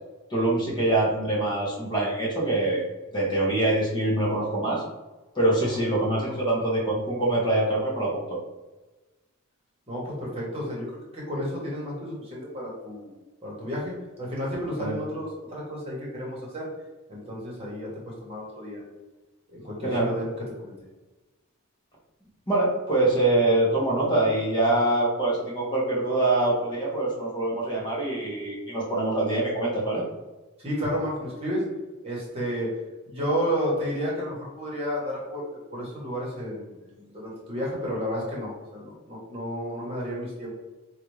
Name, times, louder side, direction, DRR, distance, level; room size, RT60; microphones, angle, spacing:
voice 1, 0.3-2.9 3.1-4.8 5.3-8.4 14.8-15.0 19.8-20.1 22.5-30.0, right 2 dB, 20° left, -4 dB, 0.9 m, -24 dB
voice 2, 9.9-10.9 11.1-13.1 13.4-16.7 17.1-18.8 19.5-20.3 20.6-20.7 30.6-31.6 32.0-32.7 33.1-40.5, equal, 25° right, -5 dB, 1.1 m, -32 dB
3.3 x 2.4 x 3.1 m, 1.2 s
head